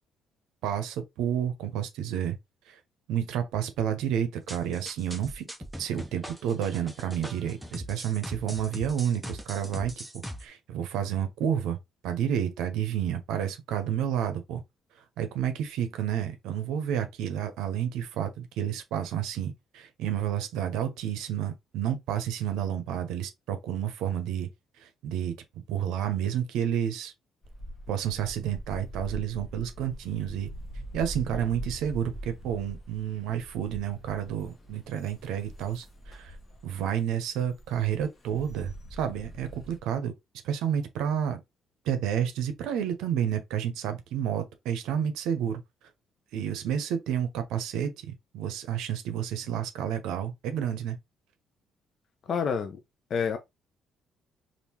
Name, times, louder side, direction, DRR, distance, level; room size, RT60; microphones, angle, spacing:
voice 1, 0.6-2.4 2.7-2.8 3.1-5.4 5.8-11.8 12.0-14.6 15.2-24.5 24.8-25.4 25.7-27.1 27.9-30.5 30.9-36.4 36.6-40.1 40.4-41.4 41.8-45.6 46.3-51.0, right 9 dB, 85° right, 0.6 m, -30 dB
sound 1, 4.5-10.4, equal, 5° right, 0.6 m, -40 dB
sound 2, 27.4-39.8, right 1 dB, 35° left, 1.1 m, -43 dB
voice 2, 52.3-52.8 53.1-53.4, left 6 dB, 55° left, 0.5 m, -27 dB
3.5 x 2.5 x 2.9 m
cardioid pair, 90°, 0 cm